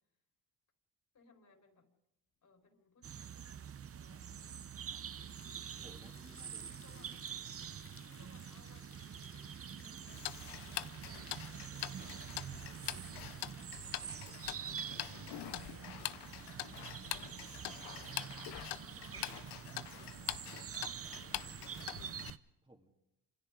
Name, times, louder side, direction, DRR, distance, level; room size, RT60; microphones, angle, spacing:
voice 1, 1.1-1.9 2.4-4.6 5.5-6.1 6.5-7.3 7.7-9.4 9.7-13.8 15.3-17.1 18.0-19.5, left 3 dB, 50° left, 2 dB, 4.9 m, -67 dB
sound 1, 3.0-22.4, right 8 dB, 35° right, 0.7 m, -46 dB
sound 2, 4.9-13.9 19.1-19.4, left 7 dB, 35° left, 0.9 m, -61 dB
voice 2, 5.8-6.7 15.1-15.4 22.6-22.9, right 1 dB, 15° right, 1 dB, 2.3 m, -60 dB
Tick-tock, 10.1-22.3, left 16 dB, 80° left, 0.7 m, -44 dB
29.5 x 26.5 x 3.8 m, 0.90 s
cardioid pair, 85°, 40 cm